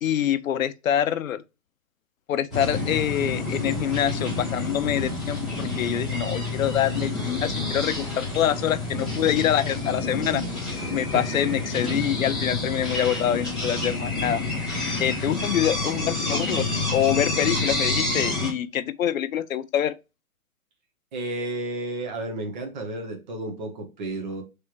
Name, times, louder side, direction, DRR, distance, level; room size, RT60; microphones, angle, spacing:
voice 1, 0.0-1.4 2.3-14.4 15.0-19.9, left 10 dB, 70° left, 0.6 m, -26 dB
sound 1, 2.5-18.5, left 2 dB, ahead, 1.5 m, -28 dB
voice 2, 21.1-24.4, right 2 dB, 35° right, 1.2 m, -32 dB
3.4 x 3.3 x 4.5 m
hypercardioid pair, 160°, 43 cm